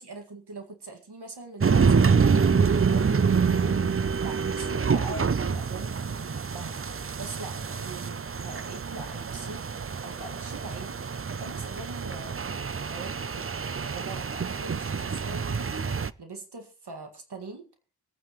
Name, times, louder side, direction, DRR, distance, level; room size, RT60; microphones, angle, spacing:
voice 1, 0.0-3.9 4.2-6.8 7.2-9.7 10.0-12.5 12.9-13.5 13.8-15.7 16.2-17.7, right 3 dB, 80° right, 5 dB, 2.0 m, -42 dB
sound 1, 1.6-16.1, right 5 dB, 35° right, 0.5 m, -26 dB
24.5 x 9.3 x 3.1 m, 0.35 s
wide cardioid pair, 85°, 39 cm